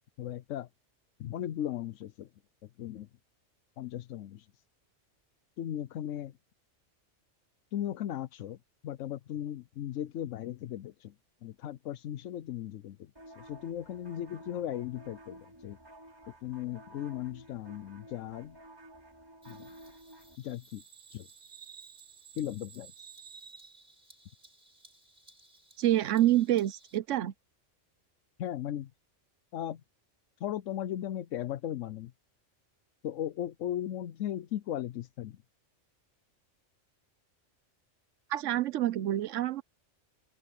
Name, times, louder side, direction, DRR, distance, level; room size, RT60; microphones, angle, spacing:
voice 1, 0.2-0.7 1.2-2.3 2.6-3.1 3.8-4.5 5.6-6.3 7.7-8.6 8.8-11.1 11.4-13.1 13.4-15.8 16.4-18.6 19.5-19.7 20.4-20.8 21.1-21.3 22.3-23.1 28.4-28.9 29.5-29.8 30.4-32.1 33.0-35.4, left 11 dB, 90° left, 1.0 m, -37 dB
sound 1, 13.2-20.4, right 1 dB, 20° right, 5.0 m, -53 dB
Bird vocalization bird call bird song, 19.4-27.0, right 5 dB, 45° right, 5.7 m, -55 dB
voice 2, 25.8-27.3 38.3-39.6, right 13 dB, 90° right, 1.0 m, -27 dB
open air
omnidirectional pair, 1.2 m